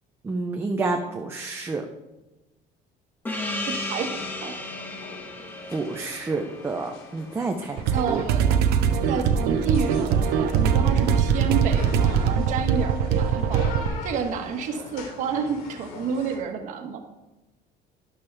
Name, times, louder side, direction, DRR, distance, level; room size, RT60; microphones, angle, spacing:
voice 1, 0.2-1.8 5.7-8.0, right 3 dB, 15° right, 2 dB, 0.7 m, -29 dB
sound 1, 3.3-16.4, left 4 dB, 70° left, 3.1 m, -43 dB
Gong, 3.3-8.3, left 2 dB, 10° left, 1.2 m, -35 dB
voice 2, 3.6-4.5 7.9-8.5 9.1-13.6 14.0-17.0, right 6 dB, 50° right, 4 dB, 1.4 m, -30 dB
sound 2, 7.8-13.9, right 7 dB, 80° right, 0.9 m, -22 dB
12.5 x 11.0 x 3.4 m, 1.0 s
cardioid pair, 175°, 16 cm